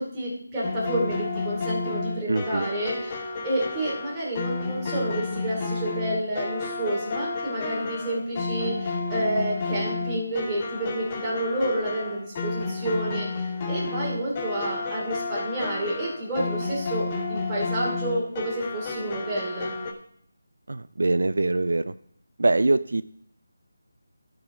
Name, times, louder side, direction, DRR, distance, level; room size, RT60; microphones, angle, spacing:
voice 1, 0.0-19.8, right 1 dB, 15° right, -6 dB, 2.6 m, -29 dB
sound 1, 0.6-19.9, left 3 dB, 25° left, 0.9 m, -31 dB
voice 2, 2.3-2.7 20.7-21.9 22.4-23.0, right 2 dB, 75° right, 14 dB, 0.3 m, -23 dB
12.0 x 4.9 x 4.8 m, 0.68 s
figure-of-eight pair, 170°, 0 cm